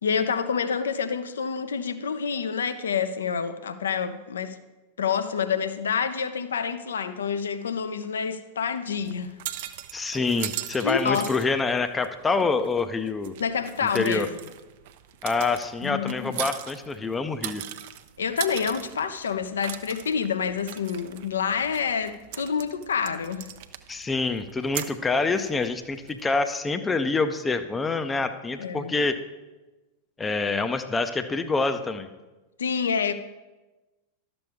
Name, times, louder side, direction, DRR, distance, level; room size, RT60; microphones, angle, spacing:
voice 1, 0.0-4.6 5.0-9.3 10.8-11.3 13.4-14.3 15.8-16.4 18.2-23.5 28.6-28.9 32.6-33.1, left 6 dB, 65° left, 0.6 m, -28 dB
sound 1, 9.0-26.3, right 12 dB, 50° right, 0.5 m, -40 dB
voice 2, 9.9-13.3 13.9-14.3 15.2-17.6 23.9-29.2 30.2-32.1, left 3 dB, 15° left, 0.5 m, -26 dB
12.0 x 6.9 x 3.5 m
figure-of-eight pair, 90°, 0 cm